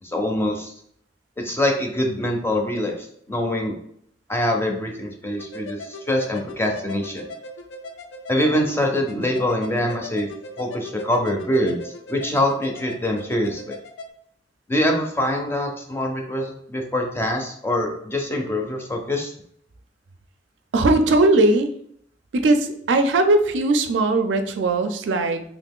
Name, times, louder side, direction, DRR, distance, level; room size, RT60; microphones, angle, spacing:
voice 1, 0.0-0.7 1.4-3.7 4.3-7.3 8.3-10.3 10.6-13.8 14.7-19.3, left 1 dB, 15° left, 2 dB, 0.5 m, -24 dB
sound 1, 5.4-14.1, left 1 dB, 85° left, 0.4 m, -39 dB
voice 2, 20.7-21.7 22.3-25.4, right 2 dB, 80° right, 7 dB, 0.4 m, -19 dB
3.0 x 2.4 x 3.6 m, 0.68 s
head